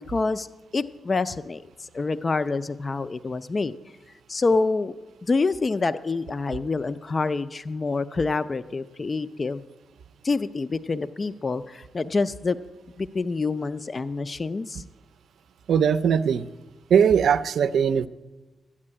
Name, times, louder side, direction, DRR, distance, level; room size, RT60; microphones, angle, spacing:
voice 1, 0.1-0.5 0.7-3.8 4.3-4.9 5.2-9.6 10.2-12.6 13.0-14.8, left 3 dB, 35° left, 13 dB, 0.4 m, -27 dB
voice 2, 15.7-16.5 16.9-18.1, right 7 dB, 80° right, 13 dB, 0.5 m, -20 dB
12.0 x 8.5 x 9.9 m, 1.2 s
cardioid pair, 110°, 0 cm